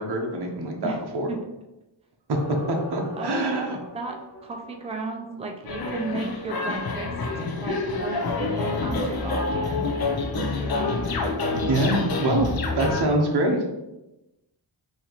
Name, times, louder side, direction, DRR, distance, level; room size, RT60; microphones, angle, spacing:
voice 1, 0.0-1.3 2.3-3.8 11.5-13.6, right 1 dB, 55° right, 1 dB, 0.8 m, -25 dB
sound 1, 2.3-5.6, equal, 85° left, 1.5 m, -41 dB
voice 2, 3.2-4.1 4.4-10.0 10.3-11.0, right 3 dB, 15° right, 2 dB, 0.4 m, -34 dB
sound 2, 5.7-13.0, left 3 dB, 50° left, 0.5 m, -27 dB
4.0 x 2.9 x 2.9 m, 0.97 s
wide cardioid pair, 85°, 47 cm